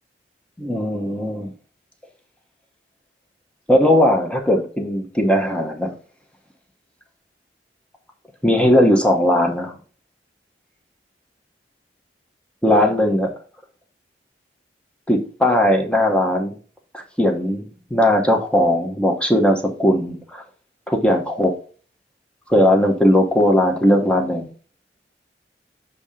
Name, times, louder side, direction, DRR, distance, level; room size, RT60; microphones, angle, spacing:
voice 1, 0.6-1.5 3.7-5.9 8.4-9.7 12.6-13.3 15.1-16.5 16.9-17.6 17.9-20.4 20.9-21.5 22.5-24.5, left 1 dB, 5° left, 0.9 m, -18 dB
7.0 x 2.8 x 5.0 m
head